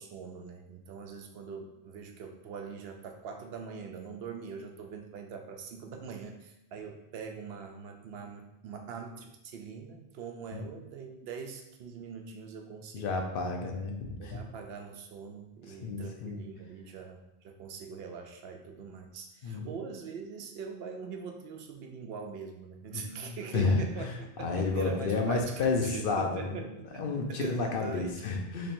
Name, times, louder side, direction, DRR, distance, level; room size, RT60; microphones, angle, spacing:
voice 1, 0.0-13.2 14.2-28.2, right 5 dB, 75° right, 4 dB, 0.8 m, -43 dB
voice 2, 12.9-14.4 15.7-16.4 19.4-19.7 22.9-24.1 24.4-26.6 27.0-28.7, left 3 dB, 65° left, 2 dB, 0.8 m, -31 dB
3.2 x 2.6 x 4.2 m, 0.86 s
omnidirectional pair, 1.0 m